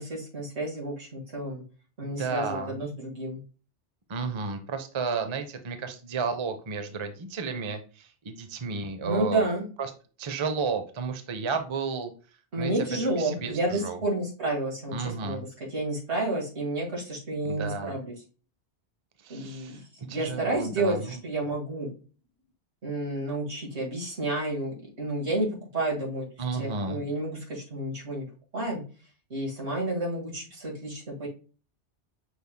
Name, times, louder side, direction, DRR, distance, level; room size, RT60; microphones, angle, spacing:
voice 1, 0.0-1.6 2.0-3.4 9.0-9.7 12.5-18.1 19.3-21.9 22.8-25.5 25.7-26.3 26.5-28.3 28.5-28.8 29.3-31.3, right 2 dB, 80° right, -2 dB, 2.2 m, -30 dB
voice 2, 2.0-2.8 4.1-9.5 9.8-9.9 10.2-12.1 12.6-12.7 13.0-14.0 14.9-15.4 17.4-18.0 19.2-19.8 20.1-21.1 26.4-27.0, right 5 dB, 35° right, 7 dB, 0.6 m, -32 dB
6.1 x 3.5 x 2.2 m, 0.36 s
omnidirectional pair, 1.1 m